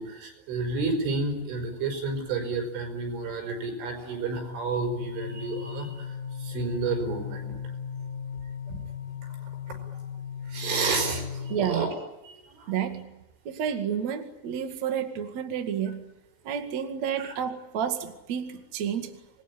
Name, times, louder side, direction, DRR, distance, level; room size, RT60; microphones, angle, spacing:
voice 1, 0.0-6.1 6.4-7.5 8.7-8.8 9.4-9.8 10.5-11.9 12.2-12.7 17.2-17.3, right 3 dB, 80° right, 5 dB, 7.7 m, -31 dB
sound 1, 4.9-11.6, left 7 dB, 25° left, 4.2 m, -37 dB
voice 2, 11.5-11.9 12.7-13.1 13.5-16.0 16.4-19.2, right 8 dB, 45° right, 6 dB, 2.6 m, -30 dB
27.5 x 21.5 x 10.0 m, 0.96 s
omnidirectional pair, 5.5 m